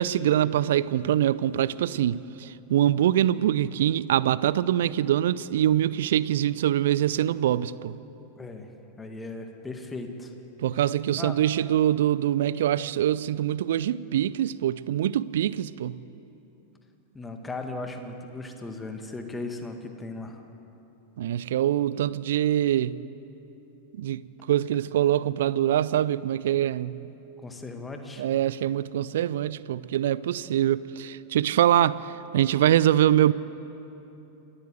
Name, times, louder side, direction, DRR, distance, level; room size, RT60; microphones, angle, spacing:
voice 1, 0.0-8.0 10.6-16.0 21.2-23.0 24.0-27.0 28.2-33.3, right 11 dB, 60° right, 0.5 m, -24 dB
voice 2, 8.4-8.7 9.0-10.3 11.1-11.4 17.1-20.4 27.4-28.3, left 2 dB, 10° left, 2.0 m, -37 dB
27.0 x 14.0 x 8.0 m
figure-of-eight pair, 90°, 0 cm